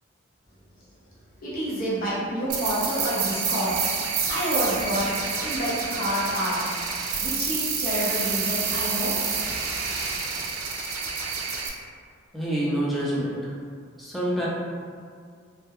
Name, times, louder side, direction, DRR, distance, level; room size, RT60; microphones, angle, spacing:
voice 1, 1.4-3.8 4.3-5.1 5.4-6.6 7.2-9.1, equal, 45° left, -8 dB, 0.6 m, -28 dB
sound 1, 2.5-11.7, right 5 dB, 85° right, 0.4 m, -28 dB
voice 2, 12.3-13.5 14.0-14.5, right 1 dB, ahead, -8 dB, 0.4 m, -27 dB
2.3 x 2.1 x 2.8 m, 2.1 s
head